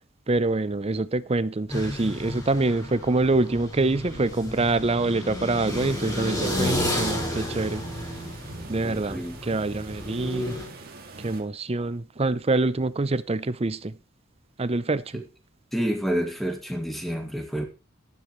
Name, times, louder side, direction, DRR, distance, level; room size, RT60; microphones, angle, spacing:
voice 1, 0.3-7.8 8.7-10.5 11.2-13.9 14.6-15.2, right 2 dB, 30° right, 0.6 m, -25 dB
sound 1, 1.7-10.6, left 1 dB, 15° left, 5.0 m, -32 dB
sound 2, 5.7-11.4, right 2 dB, 45° right, 2.5 m, -42 dB
voice 2, 8.8-9.6 15.1-15.2 15.7-17.6, equal, ahead, 2.3 m, -29 dB
13.5 x 12.0 x 3.2 m
head